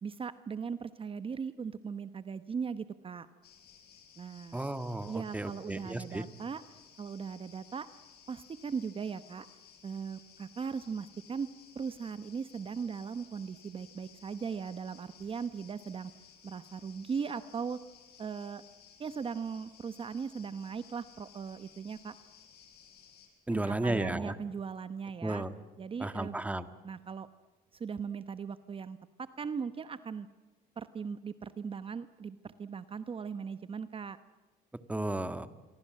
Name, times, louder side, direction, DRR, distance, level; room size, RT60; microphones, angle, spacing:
voice 1, 0.0-3.3 4.2-4.6 5.1-7.9 8.3-9.5 9.8-11.5 11.7-16.1 16.4-17.8 18.2-18.6 19.0-22.1 23.5-25.5 25.8-26.4 26.8-27.3 27.7-29.0 29.4-30.3 30.8-34.2, right 6 dB, 30° right, 12 dB, 1.0 m, -38 dB
sound 1, 3.4-23.3, left 8 dB, 70° left, 7.8 m, -58 dB
voice 2, 4.5-6.2 23.5-24.3 25.2-25.5 26.0-26.7 34.9-35.5, right 1 dB, 10° right, 11 dB, 1.6 m, -33 dB
27.5 x 23.5 x 7.7 m, 1.3 s
cardioid pair, 110°, 17 cm